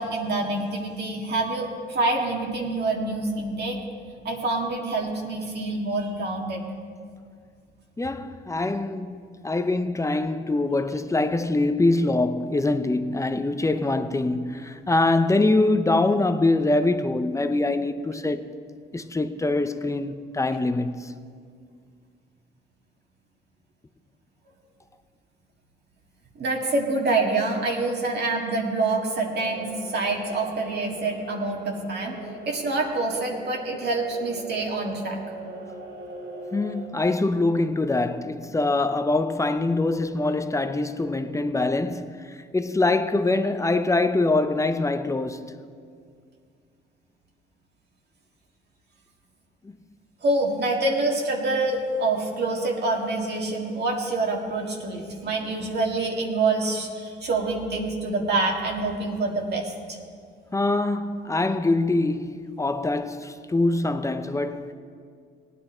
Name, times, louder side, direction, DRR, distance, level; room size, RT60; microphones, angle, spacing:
voice 1, 0.0-3.8 4.3-6.6 26.4-32.2 32.5-35.2 50.2-60.0, right 2 dB, 55° right, 1.8 m, -26 dB
voice 2, 8.0-18.5 18.9-21.1 36.5-45.4 49.6-49.7 60.5-64.7, left 2 dB, 15° left, 0.7 m, -24 dB
sound 1, 29.3-36.9, right 2 dB, 80° right, 2.7 m, -40 dB
17.0 x 9.9 x 4.4 m
cardioid pair, 90°, 20 cm